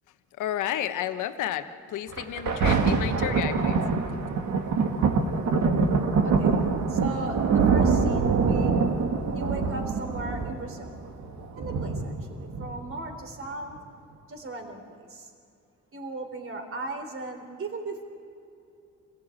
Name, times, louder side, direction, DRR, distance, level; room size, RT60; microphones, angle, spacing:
voice 1, 0.4-3.8, left 11 dB, 90° left, 9 dB, 1.2 m, -31 dB
Thunder, 2.1-13.1 13.8-13.9, right 5 dB, 70° right, 2.2 m, -25 dB
voice 2, 6.2-8.7 9.3-10.9 11.6-13.8 14.3-15.3 15.9-18.0, right 2 dB, 45° right, 5 dB, 3.5 m, -37 dB
26.5 x 16.0 x 8.5 m, 2.6 s
cardioid pair, 90°, 30 cm